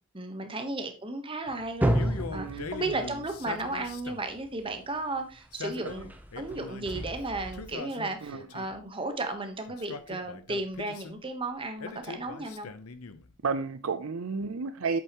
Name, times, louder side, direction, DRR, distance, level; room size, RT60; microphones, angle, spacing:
voice 1, 0.1-1.9 2.3-6.1 6.4-12.7, right 2 dB, 25° right, 1.1 m, -34 dB
sound 1, 1.5-4.7 5.9-7.7, right 1 dB, 10° right, 0.8 m, -32 dB
Male speech man speaking, 1.8-4.4 5.4-7.1 7.5-8.8 9.7-11.2 11.8-13.3, left 4 dB, 85° left, 0.8 m, -41 dB
voice 2, 2.3-2.7 5.8-5.9 8.2-8.4 13.4-15.0, right 4 dB, 70° right, 0.5 m, -31 dB
8.0 x 7.4 x 3.0 m
head